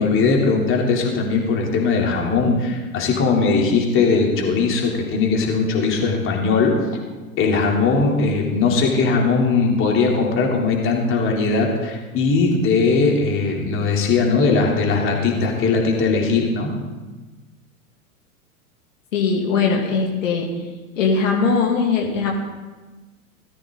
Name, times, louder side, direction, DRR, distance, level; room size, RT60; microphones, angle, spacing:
voice 1, 0.0-6.8 7.4-16.7, left 4 dB, 30° left, -1 dB, 3.6 m, -19 dB
voice 2, 19.1-20.5 21.0-22.3, left 5 dB, 60° left, -1 dB, 2.8 m, -20 dB
18.5 x 15.0 x 4.0 m, 1.2 s
figure-of-eight pair, 95°, 43 cm